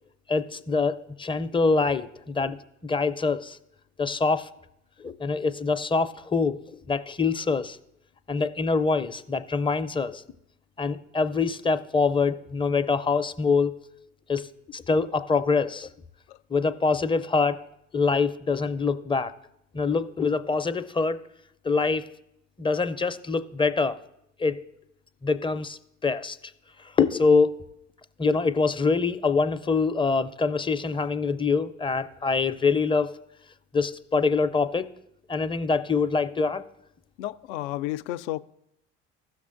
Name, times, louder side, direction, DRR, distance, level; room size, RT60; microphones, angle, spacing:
voice 1, 0.3-2.6 2.8-3.6 4.0-4.5 5.0-7.8 8.3-10.2 10.8-13.7 14.3-15.9 16.5-17.6 17.9-19.3 19.7-21.2 21.6-22.0 22.6-24.0 24.4-24.6 25.2-26.4 27.0-27.6 28.2-33.1 33.7-34.9 35.3-36.6, left 4 dB, 15° left, 10 dB, 0.5 m, -25 dB
voice 2, 37.2-38.4, left 15 dB, 70° left, 14 dB, 0.5 m, -32 dB
16.0 x 6.6 x 2.5 m, 0.79 s
hypercardioid pair, 60°, 36 cm